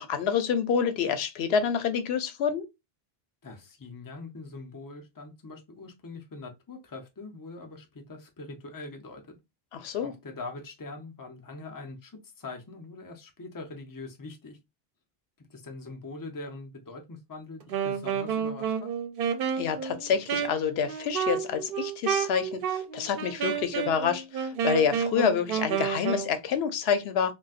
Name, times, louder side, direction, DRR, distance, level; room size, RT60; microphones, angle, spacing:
voice 1, 0.0-2.6 9.7-10.1 19.6-27.3, left 7 dB, 90° left, 0.8 m, -28 dB
voice 2, 3.4-9.4 10.0-14.6 15.4-18.9, left 3 dB, 25° left, 0.6 m, -43 dB
Wind instrument woodwind instrument, 17.6-26.3, right 7 dB, 65° right, 0.8 m, -30 dB
3.9 x 2.2 x 2.4 m
omnidirectional pair, 1.0 m